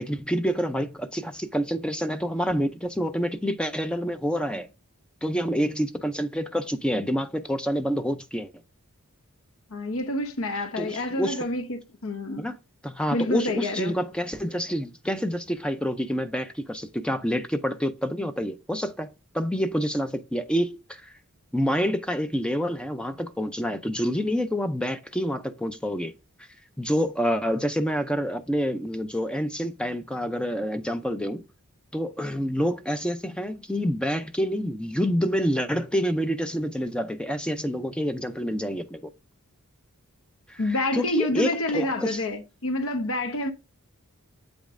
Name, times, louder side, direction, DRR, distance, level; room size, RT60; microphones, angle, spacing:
voice 1, 0.0-4.7 5.2-8.5 10.8-11.4 12.4-12.6 12.8-21.2 21.5-26.1 26.8-31.4 31.9-39.0 40.5-40.6 40.9-42.2, equal, 5° left, 0.4 m, -27 dB
voice 2, 9.7-12.5 13.1-14.0 40.6-43.5, left 2 dB, 65° left, 0.9 m, -28 dB
8.2 x 5.1 x 2.5 m
head